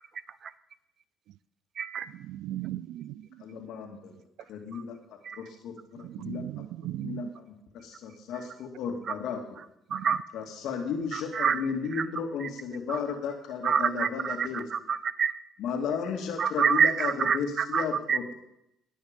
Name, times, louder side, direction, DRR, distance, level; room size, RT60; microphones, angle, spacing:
voice 1, 1.8-2.1 4.7-4.8 5.2-5.4 9.1-9.2 9.9-10.2 11.1-11.6 11.9-12.1 12.4-12.5 12.9-13.0 13.6-15.4 16.4-18.3, right 7 dB, 50° right, 0.7 m, -27 dB
voice 2, 2.3-3.3 6.0-7.2 9.9-10.0, right 14 dB, 75° right, 0.4 m, -37 dB
voice 3, 3.4-4.1 4.5-6.4 7.0-7.5 7.8-9.4 10.3-14.6 15.6-18.3, left 6 dB, 75° left, 2.2 m, -34 dB
18.5 x 6.5 x 5.2 m
supercardioid pair, 70°, 0 cm